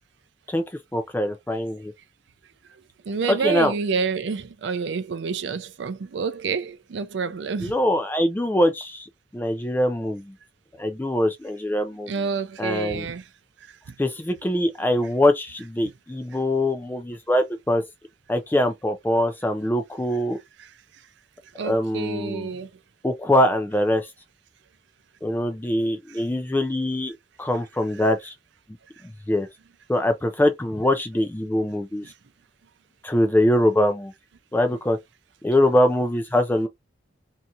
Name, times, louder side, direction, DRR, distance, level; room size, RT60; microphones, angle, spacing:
voice 1, 0.9-1.9 3.3-3.7 7.6-9.1 9.3-10.3 10.8-12.1 12.6-13.1 14.0-17.8 18.3-20.4 21.6-22.5 23.0-24.0 25.2-27.1 27.4-28.3 29.3-29.5 29.9-32.1 33.0-34.1 34.5-35.0 35.4-36.7, left 1 dB, 10° left, 0.3 m, -23 dB
voice 2, 3.1-7.7 12.1-13.2 20.6-20.7 21.6-22.7 32.0-32.1, right 5 dB, 65° right, 0.4 m, -28 dB
2.8 x 2.4 x 2.5 m
head